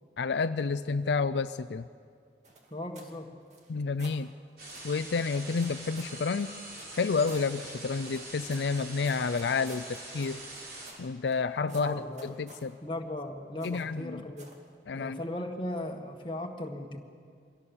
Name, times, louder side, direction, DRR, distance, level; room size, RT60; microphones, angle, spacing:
voice 1, 0.2-1.9 3.7-4.3 4.8-6.5 7.0-10.4 11.0-12.8 13.6-14.2 14.9-15.2, left 4 dB, 75° left, 11 dB, 0.5 m, -30 dB
sound 1, 2.4-3.1 3.5-4.2 4.7-4.9 5.6-6.2 6.8-7.5 8.0-11.4 11.7-12.7 13.6-14.0 14.4-14.6, right 2 dB, 40° right, 2.4 m, -52 dB
voice 2, 2.7-3.3 11.7-14.5 14.9-17.0, left 1 dB, 30° left, 2 dB, 1.7 m, -37 dB
sound 2, 4.6-10.9, right 2 dB, 55° right, 5.7 m, -44 dB
24.5 x 17.5 x 7.2 m, 2.2 s
head